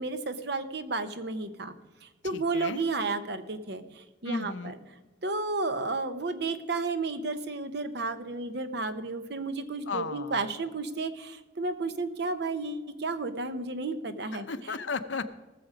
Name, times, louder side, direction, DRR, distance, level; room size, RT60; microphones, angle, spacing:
voice 1, 0.0-1.7 2.0-4.7 5.2-14.4, right 3 dB, 60° right, 10 dB, 0.9 m, -32 dB
voice 2, 2.2-2.8 4.2-4.8 9.9-10.5 14.3-15.3, left 4 dB, 75° left, 9 dB, 0.7 m, -35 dB
18.5 x 6.9 x 5.1 m, 1.2 s
head